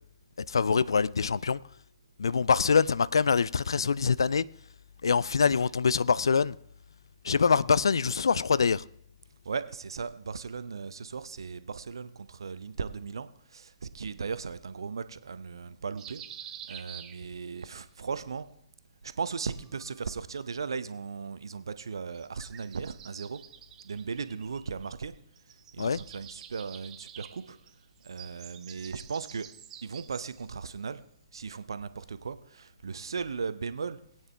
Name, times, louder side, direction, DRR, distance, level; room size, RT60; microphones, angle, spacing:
voice 1, 0.5-1.6 2.2-4.4 5.0-6.5 7.2-8.8 25.8-26.0, left 5 dB, 65° left, 0.3 m, -24 dB
voice 2, 9.4-16.2 16.7-18.5 19.0-23.4 23.8-25.1 25.7-27.6 28.0-29.5 29.8-31.0 31.3-34.0, right 5 dB, 65° right, 0.7 m, -37 dB
sound 1, 16.0-17.7 19.1-20.2 22.1-25.1 25.4-30.5, right 10 dB, 20° right, 0.6 m, -49 dB
20.0 x 9.1 x 3.4 m
figure-of-eight pair, 120°, 3 cm